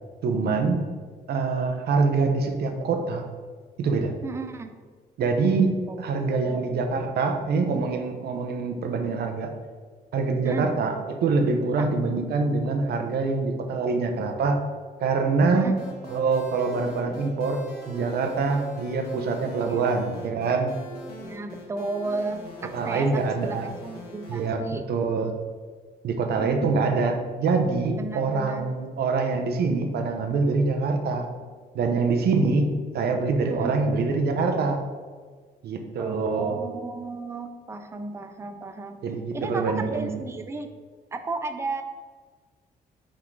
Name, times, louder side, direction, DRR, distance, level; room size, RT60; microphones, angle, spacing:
voice 1, 0.2-0.8 1.3-3.2 3.8-4.1 5.2-9.5 10.1-10.9 11.2-14.6 15.0-15.8 16.1-20.7 22.7-23.7 24.3-24.6 24.9-25.3 26.0-31.3 31.7-34.8 35.6-36.6 39.0-40.2, right 4 dB, 75° right, 5 dB, 0.8 m, -25 dB
voice 2, 4.2-4.7 5.9-6.0 6.3-6.8 10.4-10.7 11.8-11.9 15.5-15.8 19.6-19.8 21.2-24.8 26.4-26.8 28.0-28.7 33.5-33.7 36.0-39.0 39.3-40.7 41.1-41.8, right 3 dB, 15° right, 7 dB, 0.4 m, -34 dB
sound 1, 15.8-24.5, left 1 dB, 75° left, 1.4 m, -42 dB
5.8 x 3.8 x 4.7 m, 1.5 s
cardioid pair, 145°, 16 cm